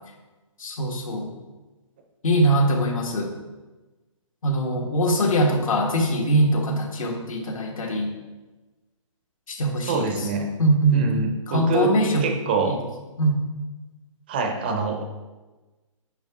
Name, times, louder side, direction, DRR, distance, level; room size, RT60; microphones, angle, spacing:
voice 1, 0.6-1.3 2.2-3.3 4.4-8.1 9.5-10.3 10.6-11.1 11.5-12.3 12.7-12.8 13.2-13.4, right 1 dB, 85° left, 2 dB, 1.6 m, -22 dB
voice 2, 9.9-10.5 10.9-11.9 12.2-12.8 14.3-15.0, right 4 dB, 20° right, 4 dB, 0.4 m, -25 dB
9.0 x 4.9 x 3.6 m, 1.2 s
hypercardioid pair, 165°, 17 cm